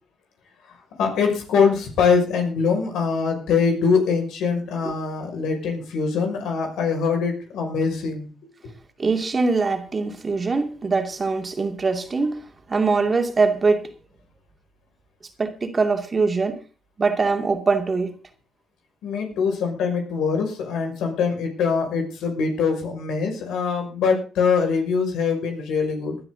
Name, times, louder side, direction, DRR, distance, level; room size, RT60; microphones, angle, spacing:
voice 1, 1.0-8.3 19.0-26.2, left 5 dB, 85° left, 5.9 m, -23 dB
voice 2, 9.0-12.4 12.7-13.9 15.4-16.6 17.0-18.1, right 4 dB, 30° right, 2.5 m, -22 dB
19.5 x 11.5 x 3.9 m
cardioid pair, 90°, 0 cm